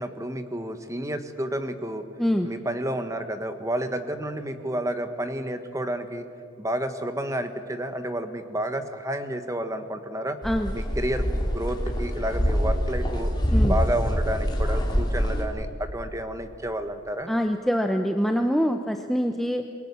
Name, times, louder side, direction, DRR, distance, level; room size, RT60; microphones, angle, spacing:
voice 1, 0.0-2.1 2.4-6.3 6.6-10.4 10.7-13.3 13.6-17.3, right 1 dB, 15° right, 8 dB, 1.4 m, -30 dB
sound 1, 10.4-15.4, equal, 20° left, 3.2 m, -25 dB
voice 2, 17.3-19.6, equal, ahead, 4 dB, 0.8 m, -24 dB
27.5 x 22.5 x 7.1 m, 2.4 s
head